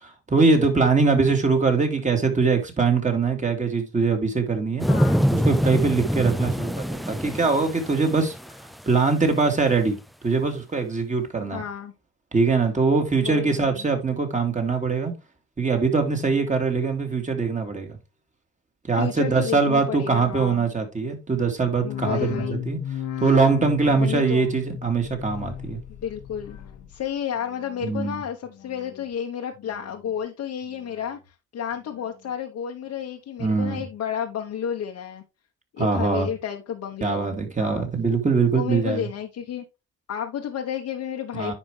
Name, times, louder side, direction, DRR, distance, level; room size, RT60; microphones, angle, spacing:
voice 1, 0.0-4.9 5.3-8.3 8.9-10.0 10.2-11.6 12.3-15.1 15.6-18.0 18.9-22.8 23.2-25.8 27.8-28.2 33.4-33.8 35.8-36.3 37.0-39.1 41.3-41.5, right 4 dB, 25° right, 2.7 m, -22 dB
sound 1, 4.8-8.8 9.3-9.4, equal, ahead, 0.3 m, -24 dB
voice 2, 4.9-5.3 11.5-11.9 13.2-13.8 18.9-20.7 21.8-22.6 23.8-24.5 25.9-26.6 26.9-35.2 35.7-37.9 38.5-39.6 40.1-41.5, left 9 dB, 60° left, 1.2 m, -31 dB
sound 2, 21.7-27.0 27.4-28.0 28.4-29.1 29.5-30.2 30.6-31.3 31.8-32.3 32.9-33.0, left 10 dB, 85° left, 1.4 m, -35 dB
10.0 x 5.3 x 3.3 m
cardioid pair, 90°, 30 cm